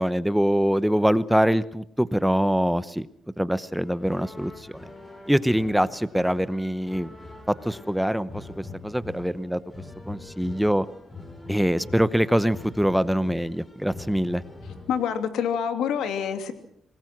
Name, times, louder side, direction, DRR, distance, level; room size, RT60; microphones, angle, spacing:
voice 1, 0.0-3.1 3.4-4.8 5.3-7.1 7.5-9.6 10.1-10.8 11.5-14.4, equal, 5° right, 15 dB, 0.8 m, -24 dB
sound 1, 3.7-15.0, left 3 dB, 20° left, 7.1 m, -43 dB
voice 2, 14.9-16.5, left 7 dB, 80° left, 7 dB, 2.7 m, -26 dB
26.5 x 20.0 x 6.1 m, 0.70 s
cardioid pair, 90°, 0 cm